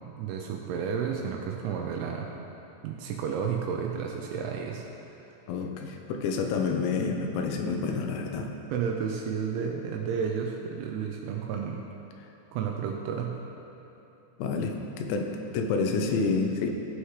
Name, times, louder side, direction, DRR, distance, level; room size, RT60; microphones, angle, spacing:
voice 1, 0.1-2.3 2.8-4.9 8.7-11.8 12.5-13.4, right 7 dB, 85° right, 1 dB, 3.0 m, -31 dB
voice 2, 5.5-8.5 14.4-16.7, left 4 dB, 80° left, 3 dB, 2.9 m, -29 dB
15.5 x 6.4 x 3.2 m, 2.9 s
omnidirectional pair, 5.3 m